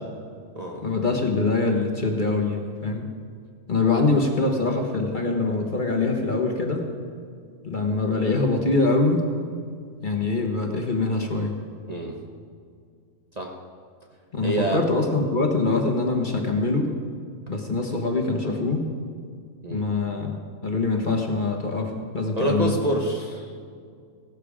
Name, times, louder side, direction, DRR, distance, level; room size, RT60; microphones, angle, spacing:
voice 1, 0.8-3.1 3.7-6.9 7.6-9.3 10.0-11.6 14.3-16.9 17.5-18.9 19.7-22.7, left 3 dB, 35° left, 2 dB, 1.3 m, -24 dB
voice 2, 11.9-12.2 13.4-13.5 14.4-14.8 19.6-19.9 22.4-23.6, right 1 dB, 30° right, 0 dB, 1.1 m, -26 dB
16.5 x 12.5 x 5.0 m, 2.2 s
omnidirectional pair, 1.5 m